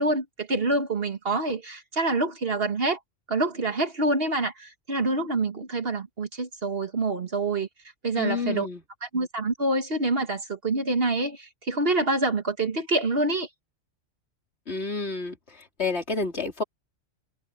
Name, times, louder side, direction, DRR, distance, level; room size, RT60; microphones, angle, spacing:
voice 1, 0.0-3.0 3.3-7.7 8.0-8.7 9.0-13.5, right 2 dB, 50° right, 1.8 m, -26 dB
voice 2, 8.1-8.8 14.7-16.6, left 4 dB, 60° left, 3.8 m, -29 dB
omnidirectional pair, 1.2 m